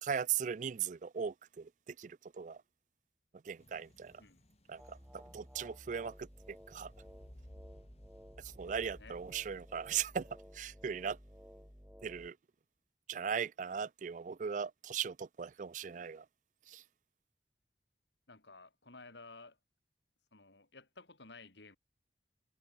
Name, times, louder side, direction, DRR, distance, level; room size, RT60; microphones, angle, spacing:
voice 1, 0.0-2.6 3.4-4.2 4.7-6.9 8.4-10.3 10.5-11.2 12.0-12.4 13.1-16.3 16.7-16.8, right 7 dB, 45° right, 0.4 m, -38 dB
sound 1, 3.6-10.3, equal, 35° left, 3.0 m, -59 dB
sound 2, 4.8-12.3, equal, 5° right, 7.6 m, -55 dB
voice 2, 18.3-19.6 20.3-21.8, left 3 dB, 80° left, 4.1 m, -54 dB
head